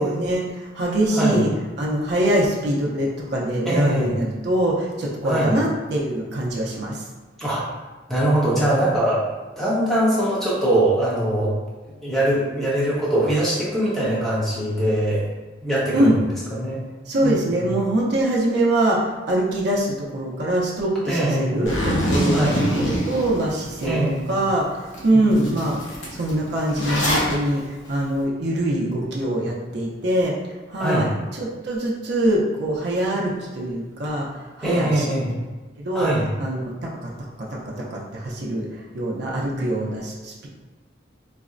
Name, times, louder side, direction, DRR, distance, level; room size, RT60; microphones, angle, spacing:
voice 1, 0.0-1.5 1.8-7.0 15.9-16.2 17.1-24.0 24.3-27.6 27.9-30.4 30.7-31.1 31.4-35.1 35.8-36.1 36.4-37.1 37.4-38.7 38.9-40.5, right 1 dB, 60° right, -4 dB, 0.5 m, -23 dB
voice 2, 1.1-1.4 3.6-4.1 5.2-5.5 7.4-7.6 8.1-9.2 9.6-11.5 12.0-15.3 15.6-16.1 16.5-16.8 17.2-17.6 21.1-21.6 22.3-22.6 23.8-24.3 25.1-25.5 30.8-31.1 34.6-35.3 35.9-36.2, right 1 dB, ahead, -8 dB, 0.8 m, -22 dB
Zipper (clothing), 21.7-23.9 24.4-24.5 24.9-25.1 25.3-27.3, equal, 75° left, 0.8 m, -24 dB
4.1 x 2.0 x 2.4 m, 1.3 s
head